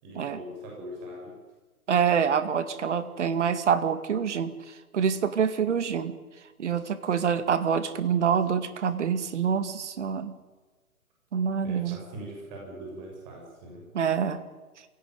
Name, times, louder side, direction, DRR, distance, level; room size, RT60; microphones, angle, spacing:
voice 1, 0.0-1.4 11.6-13.8, equal, 30° right, -1 dB, 7.4 m, -41 dB
voice 2, 1.9-4.5 4.9-6.2 6.6-10.3 11.3-12.0 13.9-14.4, right 7 dB, 50° right, 11 dB, 2.2 m, -26 dB
26.0 x 17.5 x 9.3 m, 1.3 s
figure-of-eight pair, 135°, 44 cm